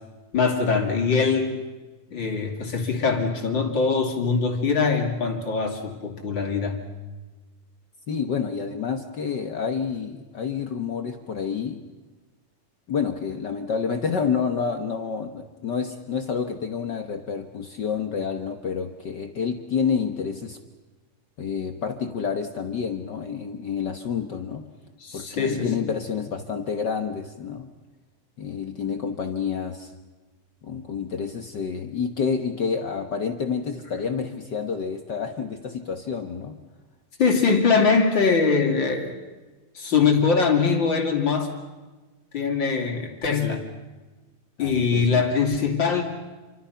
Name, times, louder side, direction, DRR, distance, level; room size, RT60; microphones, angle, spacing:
voice 1, 0.3-1.6 2.1-6.8 25.0-25.9 37.2-39.1 39.7-41.5 42.3-43.6 44.6-46.0, left 5 dB, 35° left, 3 dB, 3.2 m, -22 dB
voice 2, 8.1-11.8 12.9-20.6 21.4-24.7 25.1-27.7 28.4-29.9 30.6-36.5 44.6-45.3, left 6 dB, 60° left, 7 dB, 1.1 m, -29 dB
28.5 x 25.0 x 5.7 m, 1.2 s
omnidirectional pair, 3.6 m